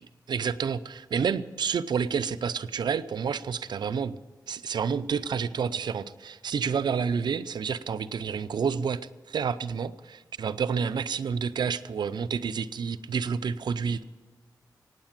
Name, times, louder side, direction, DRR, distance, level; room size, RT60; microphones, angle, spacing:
voice 1, 0.3-4.2 4.5-9.0 9.3-14.0, right 6 dB, 85° right, 15 dB, 0.5 m, -29 dB
16.0 x 9.6 x 7.4 m, 1.5 s
wide cardioid pair, 80°, 7 cm